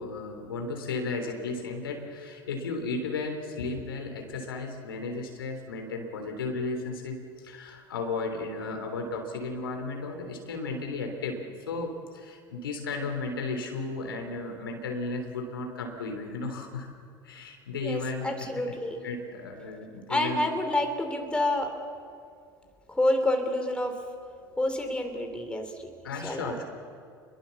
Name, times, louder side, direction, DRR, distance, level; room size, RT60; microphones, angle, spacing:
voice 1, 0.0-11.4 11.7-16.9 17.2-18.7 19.0-20.4 26.0-26.7, left 3 dB, 80° left, 4 dB, 3.5 m, -34 dB
voice 2, 17.8-19.0 20.1-21.7 22.9-24.0 24.6-25.9 26.2-26.6, left 1 dB, 10° left, 4 dB, 3.6 m, -28 dB
26.5 x 22.0 x 7.2 m, 2.3 s
hypercardioid pair, 80°, 12 cm